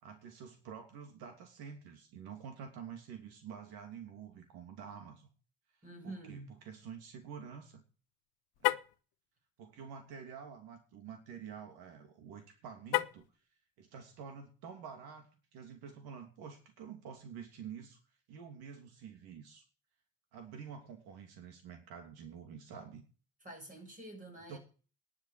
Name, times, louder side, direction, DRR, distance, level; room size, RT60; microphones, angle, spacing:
voice 1, 0.0-5.3 6.0-7.8 8.6-8.8 9.6-13.2 13.8-18.0 18.3-19.7 20.3-23.0 24.5-24.6, right 7 dB, 80° right, 2.9 m, -48 dB
voice 2, 5.8-6.5 23.4-24.6, right 2 dB, 20° right, 6.9 m, -47 dB
Car, 8.5-9.0 12.9-13.4, left 18 dB, 85° left, 0.9 m, -32 dB
11.0 x 8.3 x 8.8 m
cardioid pair, 140°, 37 cm